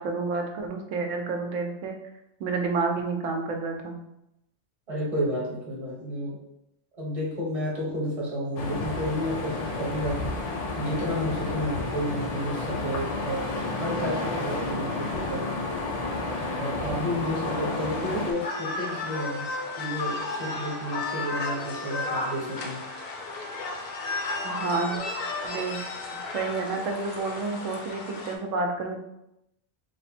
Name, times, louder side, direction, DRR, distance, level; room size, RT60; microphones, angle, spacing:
voice 1, 0.0-1.9 2.4-4.0 24.4-25.0 25.4-25.8 26.3-29.0, right 4 dB, 90° right, 3 dB, 1.0 m, -29 dB
voice 2, 4.9-6.4 7.0-10.2 10.7-15.6 16.5-19.5 19.8-22.8, equal, 30° right, -4 dB, 1.0 m, -31 dB
sound 1, 8.6-18.3, left 2 dB, 85° left, 0.3 m, -31 dB
sound 2, 17.3-28.3, left 3 dB, 60° left, 0.7 m, -34 dB
3.4 x 2.1 x 4.2 m, 0.85 s
omnidirectional pair, 1.3 m